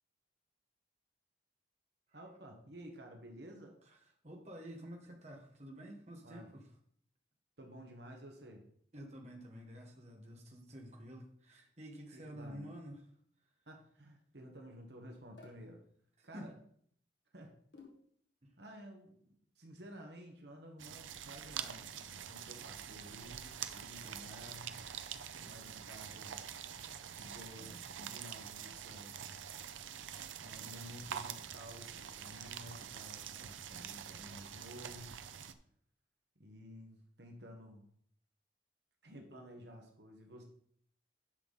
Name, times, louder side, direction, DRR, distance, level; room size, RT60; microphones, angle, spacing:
voice 1, 2.1-3.7 6.2-6.5 7.6-8.6 12.1-12.8 13.7-15.8 16.2-16.5 17.3-17.5 18.6-24.8 25.4-26.4 27.1-29.2 30.4-35.1 36.4-37.9 39.0-40.4, equal, 60° right, 2 dB, 1.5 m, -53 dB
voice 2, 4.2-6.7 8.9-13.1 16.2-16.5 18.4-18.5, equal, 35° right, 0 dB, 1.6 m, -50 dB
sound 1, 15.4-15.6 17.7-18.1, left 3 dB, 65° left, 2.0 m, -55 dB
sound 2, 20.8-35.5, right 8 dB, 90° right, 0.6 m, -46 dB
10.5 x 6.1 x 4.1 m, 0.62 s
head